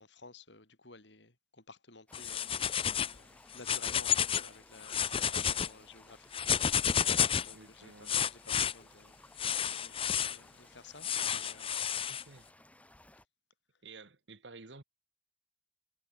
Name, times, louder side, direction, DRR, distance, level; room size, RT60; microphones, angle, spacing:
voice 1, 0.0-2.6 3.1-7.1 7.4-9.2 9.6-11.8, left 3 dB, 85° left, 4.7 m, -54 dB
sound 1, 2.1-3.2 3.5-4.5 4.8-5.7 6.3-7.5 8.1-8.7 9.4-10.4 11.0-12.2, left 8 dB, 30° left, 0.6 m, -31 dB
sound 2, 2.1-13.3, left 1 dB, 10° left, 2.3 m, -60 dB
voice 2, 7.5-8.2 12.1-12.5 13.8-14.8, right 3 dB, 90° right, 1.7 m, -52 dB
head